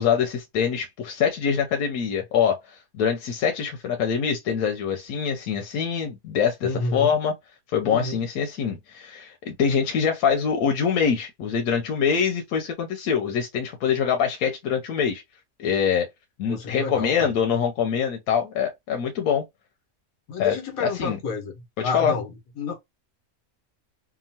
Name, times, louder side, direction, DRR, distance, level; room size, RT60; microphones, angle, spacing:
voice 1, 0.0-7.3 7.7-15.2 15.6-16.1 16.4-19.4 20.4-20.5 20.8-21.2 21.8-22.2, left 7 dB, 90° left, 1.1 m, -24 dB
voice 2, 6.6-7.1 7.8-8.2 16.5-17.3 20.3-22.3 22.6-22.8, left 3 dB, 75° left, 1.4 m, -30 dB
2.9 x 2.1 x 2.7 m
omnidirectional pair, 1.5 m